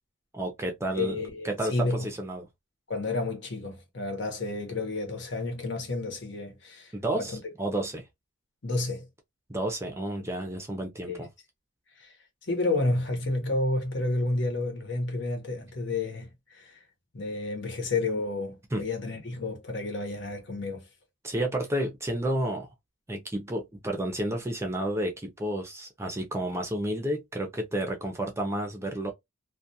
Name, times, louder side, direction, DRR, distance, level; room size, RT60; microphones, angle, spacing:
voice 1, 0.3-1.2 1.4-2.5 6.9-8.1 9.5-11.3 18.7-18.8 21.2-22.7 23.1-29.1, right 1 dB, 15° right, 0.5 m, -31 dB
voice 2, 1.0-2.1 2.9-7.4 8.6-9.1 11.1-11.2 12.0-12.2 12.5-16.8 17.1-20.9, left 2 dB, 60° left, 0.9 m, -30 dB
2.3 x 2.2 x 2.6 m
head